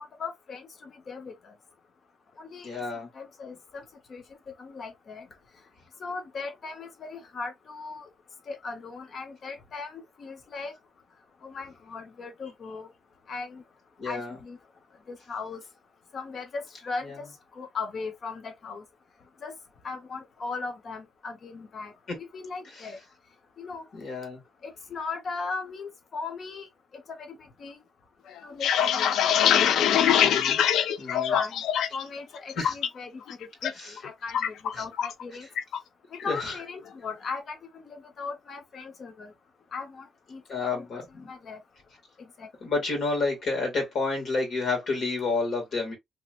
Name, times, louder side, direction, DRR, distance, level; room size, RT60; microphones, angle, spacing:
voice 1, 0.0-1.5 2.4-2.7 3.1-3.8 4.1-4.2 4.6-5.3 6.0-8.1 8.5-10.7 11.4-12.9 13.3-13.6 14.0-14.6 15.1-15.6 16.1-17.3 17.5-18.8 19.4-19.5 19.8-23.0 23.6-23.8 24.6-26.7 26.9-27.8 28.4-29.9 31.1-31.6 31.9-33.2 33.6-35.5 36.2-39.3 39.7-41.6 42.2-42.5, left 4 dB, 45° left, 0.9 m, -38 dB
voice 2, 2.6-3.1 14.0-14.4 17.0-17.2 22.1-22.2 22.7-22.9 23.9-24.4 30.2-30.6 31.0-31.4 32.5-32.8 33.7-34.0 34.7-34.8 36.2-36.5 40.5-41.3 42.6-45.9, left 3 dB, 60° left, 2.1 m, -30 dB
sound 1, 28.4-32.0 32.4-32.9 33.3-33.7 34.0-35.2 35.6-35.8 36.1-36.6, left 9 dB, 90° left, 0.3 m, -23 dB
3.0 x 2.9 x 2.5 m
wide cardioid pair, 155°, 0 cm